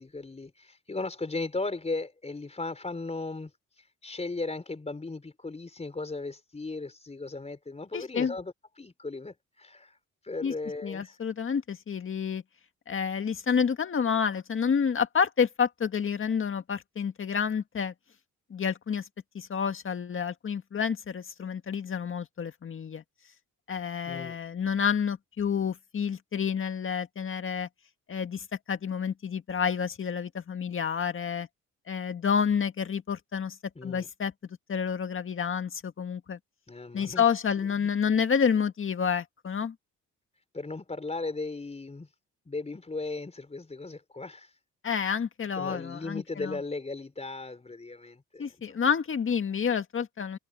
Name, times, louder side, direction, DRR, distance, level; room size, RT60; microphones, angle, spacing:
voice 1, 0.0-10.0 10.2-11.2 24.1-24.4 33.7-34.1 36.7-37.3 37.6-37.9 40.5-42.1 42.5-44.6 45.6-48.6, left 3 dB, 20° left, 4.7 m, -37 dB
voice 2, 7.9-8.3 10.4-10.5 10.8-12.4 12.9-17.9 18.5-19.0 19.3-23.0 23.7-27.7 28.1-31.5 31.9-33.6 33.8-34.3 34.7-36.4 36.9-39.8 44.8-46.6 48.4-50.4, left 7 dB, 45° left, 1.9 m, -29 dB
cardioid pair, 90°, 30 cm